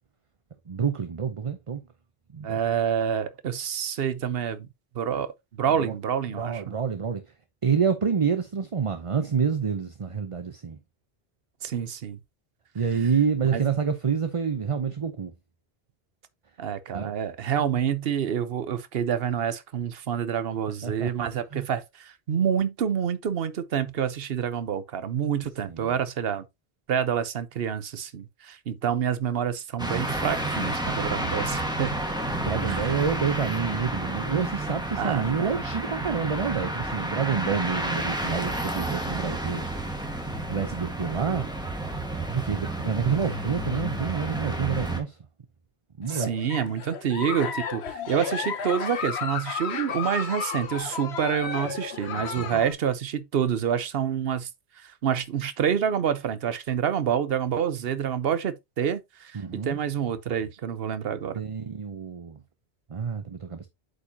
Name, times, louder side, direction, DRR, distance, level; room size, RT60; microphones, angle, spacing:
voice 1, 0.7-1.8 2.3-2.6 5.8-5.9 6.3-7.2 7.6-10.8 12.7-15.3 16.9-17.1 20.8-21.1 21.5-21.7 25.6-25.9 32.4-39.6 40.5-41.5 42.3-45.2 46.0-46.3 52.2-52.6 59.3-59.8 61.3-62.4 62.9-63.7, right 6 dB, 35° right, 0.6 m, -28 dB
voice 2, 2.4-4.7 4.9-5.3 5.6-6.6 11.6-12.2 13.5-13.6 16.6-26.4 26.9-32.0 32.7-33.0 35.0-35.6 37.5-37.6 46.1-54.5 54.8-61.4, right 8 dB, 65° right, 1.0 m, -28 dB
sound 1, 29.8-45.0, right 1 dB, 5° right, 1.4 m, -31 dB
Giggle, 46.0-52.7, left 7 dB, 75° left, 1.2 m, -33 dB
8.3 x 5.2 x 2.8 m
omnidirectional pair, 1.1 m